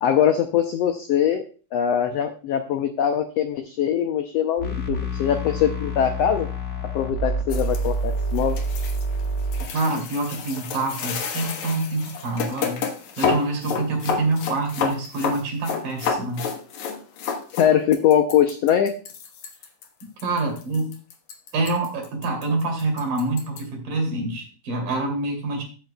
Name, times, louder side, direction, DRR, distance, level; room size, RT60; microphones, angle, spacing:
voice 1, 0.0-1.4 1.7-6.5 6.9-8.6 17.6-18.9, left 9 dB, 90° left, 7 dB, 1.4 m, -22 dB
sound 1, 4.6-9.6, right 1 dB, 50° left, 0.8 m, -27 dB
sound 2, 7.5-23.6, left 6 dB, 65° left, 2.5 m, -30 dB
voice 2, 9.7-12.8 13.2-16.4 20.2-20.9 21.5-25.6, right 2 dB, 80° right, 2 dB, 4.4 m, -26 dB
15.0 x 7.9 x 2.3 m, 0.37 s
omnidirectional pair, 3.8 m